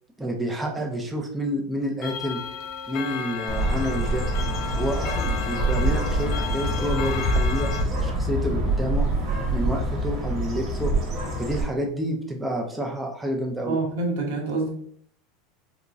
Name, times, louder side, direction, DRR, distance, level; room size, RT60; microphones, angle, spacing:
voice 1, 0.2-2.4 2.9-4.3 4.7-9.1 9.5-10.9 11.4-13.8, equal, 5° right, 0 dB, 0.4 m, -29 dB
Clock, 2.0-7.8, left 7 dB, 55° left, 0.5 m, -33 dB
Bird, 3.5-11.6, right 1 dB, 30° right, 0.8 m, -25 dB
voice 2, 13.7-14.7, right 3 dB, 80° right, 0 dB, 1.0 m, -26 dB
3.4 x 3.0 x 2.5 m, 0.62 s
supercardioid pair, 155°, 0 cm